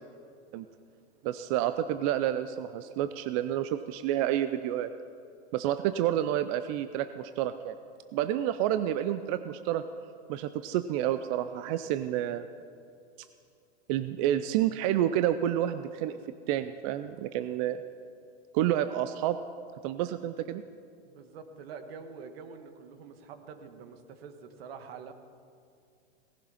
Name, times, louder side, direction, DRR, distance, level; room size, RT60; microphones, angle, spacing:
voice 1, 1.2-4.9 5.5-7.8 8.1-9.8 10.3-12.5 13.9-16.2 16.5-17.8 18.5-19.4 19.8-20.6, right 12 dB, 30° right, 11 dB, 0.4 m, -29 dB
voice 2, 21.0-25.1, right 5 dB, 60° right, 8 dB, 1.6 m, -46 dB
18.0 x 11.5 x 5.7 m, 2.4 s
hypercardioid pair, 140°, 34 cm